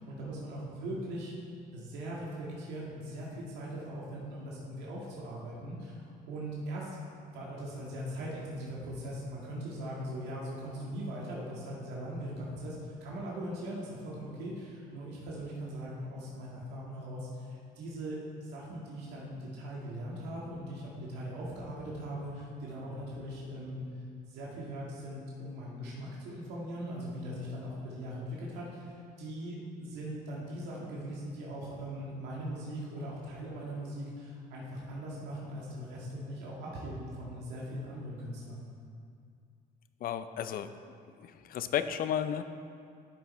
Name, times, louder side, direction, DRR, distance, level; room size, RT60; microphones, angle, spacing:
voice 1, 0.0-1.3 1.7-7.0 7.3-17.5 17.8-23.8 24.3-38.7, equal, 90° right, -5 dB, 1.9 m, -40 dB
voice 2, 40.0-40.7 41.2-42.4, left 9 dB, 60° left, 11 dB, 0.6 m, -33 dB
12.0 x 6.5 x 4.2 m, 2.3 s
cardioid pair, 110°, 17 cm